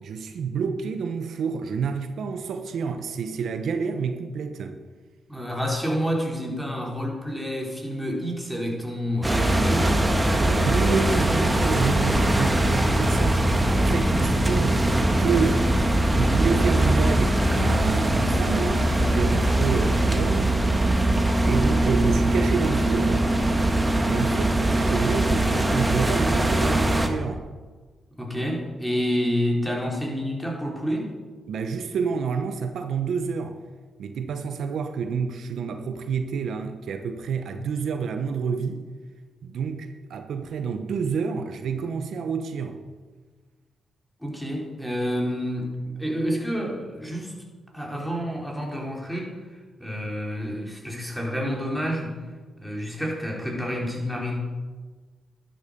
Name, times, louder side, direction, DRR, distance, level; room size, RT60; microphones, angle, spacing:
voice 1, 0.0-4.8 10.6-14.9 15.2-15.7 16.1-20.9 21.4-23.3 24.0-27.5 31.5-33.6 34.0-38.9 39.4-42.8, right 5 dB, 75° right, 1.0 m, -29 dB
voice 2, 5.3-10.1 28.2-31.1 44.2-47.3 47.7-52.1 52.6-54.4, equal, ahead, 4.1 m, -29 dB
sound 1, 9.2-27.1, right 1 dB, 15° right, 1.9 m, -21 dB
12.5 x 11.5 x 5.3 m
cardioid pair, 65°, 0 cm